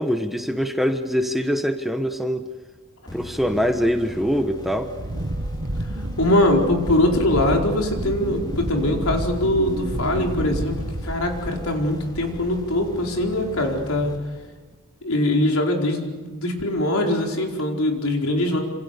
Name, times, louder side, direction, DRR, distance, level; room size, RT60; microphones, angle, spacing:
voice 1, 0.0-2.5 3.1-4.9, equal, ahead, 7 dB, 1.2 m, -23 dB
sound 1, 3.1-14.8, left 1 dB, 20° left, 3.3 m, -40 dB
Wind, 5.0-11.8 12.1-12.6, right 1 dB, 50° right, 1.5 m, -30 dB
voice 2, 6.2-10.8 11.0-14.1 15.0-18.6, left 1 dB, 75° left, 1 dB, 4.7 m, -22 dB
27.0 x 27.0 x 6.9 m, 1.4 s
head